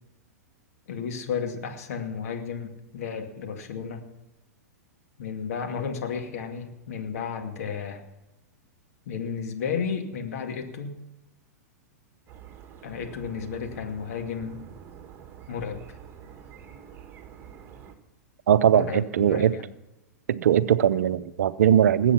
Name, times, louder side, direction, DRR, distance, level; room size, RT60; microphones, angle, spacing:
voice 1, 0.9-4.0 5.2-8.0 9.1-11.0 12.8-14.6 15.5-15.8 18.7-19.6, left 6 dB, 65° left, 2.3 m, -33 dB
sound 1, 12.3-17.9, right 8 dB, 25° right, 2.2 m, -47 dB
voice 2, 18.5-19.5 20.3-22.1, right 9 dB, 70° right, 0.7 m, -20 dB
20.0 x 8.2 x 5.9 m
hypercardioid pair, 110°, 9 cm